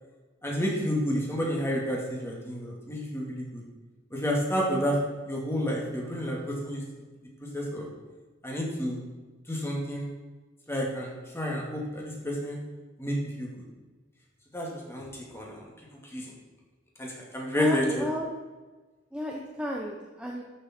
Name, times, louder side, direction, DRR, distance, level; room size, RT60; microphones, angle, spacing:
voice 1, 0.4-3.6 4.1-5.0 5.3-6.8 7.5-7.9 8.4-9.0 9.5-10.1 10.7-12.6 13.0-13.7 14.5-15.7 16.1-16.3 17.0-18.1, equal, 15° left, -2 dB, 2.2 m, -30 dB
voice 2, 17.6-18.3 19.1-20.4, equal, 5° right, -1 dB, 0.8 m, -33 dB
12.5 x 6.7 x 4.4 m, 1.3 s
head